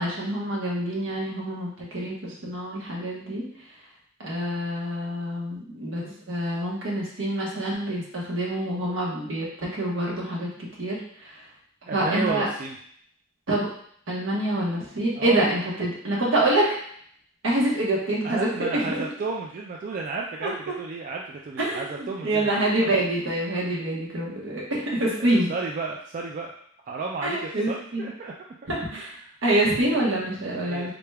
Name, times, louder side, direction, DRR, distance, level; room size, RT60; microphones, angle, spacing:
voice 1, 0.0-3.4 4.2-10.5 10.8-11.0 11.9-12.5 13.5-13.7 14.1-16.7 17.4-19.0 20.4-20.5 21.6-25.5 27.2-28.1 28.7-29.1 29.4-30.9, right 1 dB, 75° right, -4 dB, 1.1 m, -26 dB
voice 2, 11.9-12.8 15.1-15.5 18.2-23.0 25.2-26.5 26.9-29.3 29.6-30.9, right 3 dB, 40° right, -1 dB, 0.3 m, -33 dB
3.8 x 3.3 x 2.2 m, 0.63 s
head